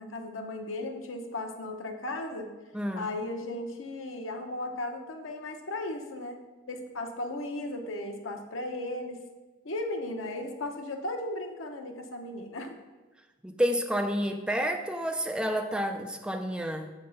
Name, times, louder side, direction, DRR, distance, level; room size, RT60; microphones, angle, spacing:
voice 1, 0.0-2.5 2.9-6.4 6.7-9.2 9.6-12.7, left 2 dB, 85° left, 4 dB, 0.8 m, -36 dB
voice 2, 2.7-3.1 13.4-16.9, equal, 5° right, 5 dB, 0.4 m, -29 dB
6.7 x 3.5 x 5.4 m, 1.2 s
head